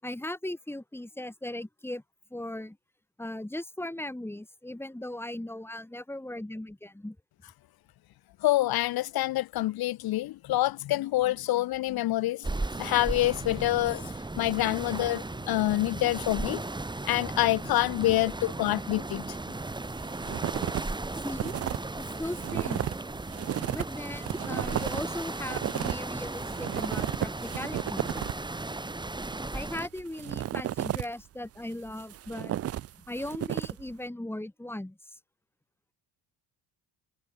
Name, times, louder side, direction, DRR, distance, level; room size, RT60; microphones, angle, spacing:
voice 1, 0.0-2.0 2.3-2.8 3.2-7.2 11.5-11.6 18.4-18.5 21.2-21.5 22.0-22.9 23.7-28.1 29.5-32.6 33.0-35.2, left 1 dB, 5° left, 6.1 m, -38 dB
voice 2, 8.4-12.5 12.8-16.6 17.0-19.4, left 15 dB, 65° left, 1.1 m, -27 dB
sound 1, 12.4-29.9, right 2 dB, 10° right, 3.6 m, -36 dB
sound 2, 19.5-20.9 21.1-28.5 29.3-31.2 31.7-33.9, right 12 dB, 40° right, 0.5 m, -33 dB
cardioid pair, 120°, 39 cm